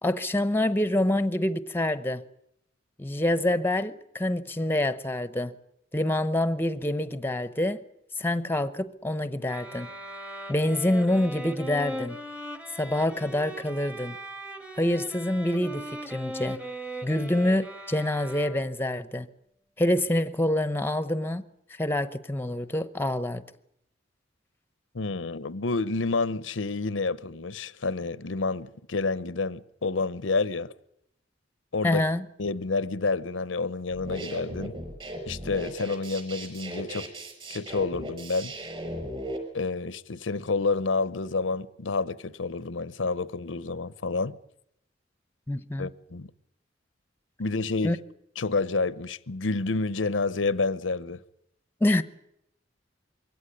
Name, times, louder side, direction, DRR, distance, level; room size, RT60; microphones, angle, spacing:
voice 1, 0.0-2.2 3.0-5.5 5.9-7.8 8.2-9.9 10.5-12.2 12.8-14.2 14.8-16.6 17.0-19.3 19.8-21.5 21.8-23.4 31.8-32.3 45.5-45.9 47.8-48.0 51.8-52.0, left 1 dB, 10° left, 0.9 m, -26 dB
sound 1, 9.5-18.9, right 1 dB, 5° right, 1.4 m, -39 dB
voice 2, 24.9-30.7 31.7-32.0 32.4-34.8 35.2-37.1 37.5-38.5 39.5-44.4 45.8-46.3 47.4-48.0 48.4-51.2, left 3 dB, 85° left, 0.8 m, -29 dB
sound 2, 33.9-39.4, right 1 dB, 30° right, 6.1 m, -37 dB
23.0 x 17.0 x 9.9 m
head